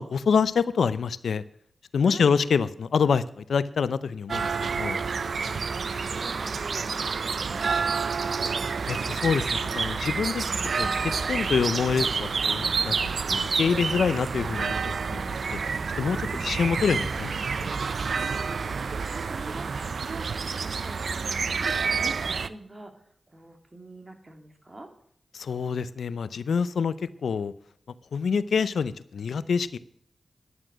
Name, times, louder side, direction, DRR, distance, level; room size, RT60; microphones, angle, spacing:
voice 1, 0.0-1.4 1.9-5.0 8.9-10.4 10.8-14.8 15.1-15.4 16.0-17.7 25.3-27.0 27.2-27.5 28.1-29.8, left 6 dB, 85° left, 16 dB, 0.5 m, -26 dB
voice 2, 2.0-2.4 5.5-5.6 5.9-6.9 7.2-8.4 16.2-16.5 18.2-24.9, right 1 dB, 35° right, 5 dB, 2.8 m, -45 dB
sound 1, 4.3-22.5, right 5 dB, 75° right, 0.6 m, -28 dB
11.0 x 9.9 x 6.2 m, 0.65 s
cardioid pair, 45°, 0 cm